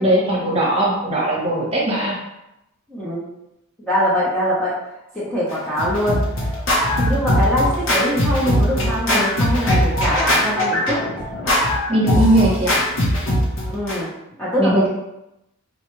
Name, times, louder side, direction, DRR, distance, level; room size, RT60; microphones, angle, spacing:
voice 1, 0.0-2.2 11.9-12.8 14.6-14.9, right 1 dB, 25° right, -5 dB, 0.9 m, -19 dB
voice 2, 2.9-3.2 3.8-4.8 5.1-6.2 7.0-11.0 13.7-14.1 14.4-14.9, equal, 5° left, -9 dB, 0.7 m, -22 dB
Scratching (performance technique), 5.5-14.0, equal, 65° left, 0.9 m, -20 dB
4.3 x 2.3 x 3.0 m, 0.87 s
head